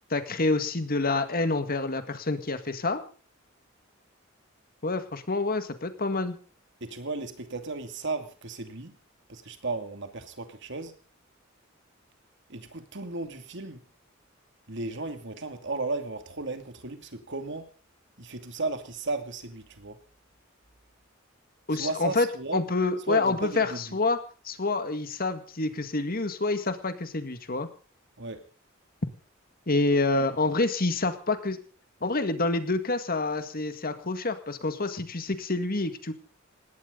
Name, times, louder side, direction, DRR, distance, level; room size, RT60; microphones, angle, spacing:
voice 1, 0.1-3.0 4.8-6.4 21.7-22.3 22.5-24.2 24.4-27.7 29.7-31.6 32.0-36.1, left 3 dB, 45° left, 9 dB, 1.9 m, -27 dB
voice 2, 6.8-9.0 9.3-11.0 12.5-13.8 14.7-17.7 18.2-20.0 21.7-22.6 23.1-24.0 28.2-28.5, right 3 dB, 60° right, 7 dB, 2.6 m, -35 dB
20.0 x 17.0 x 4.0 m, 0.37 s
head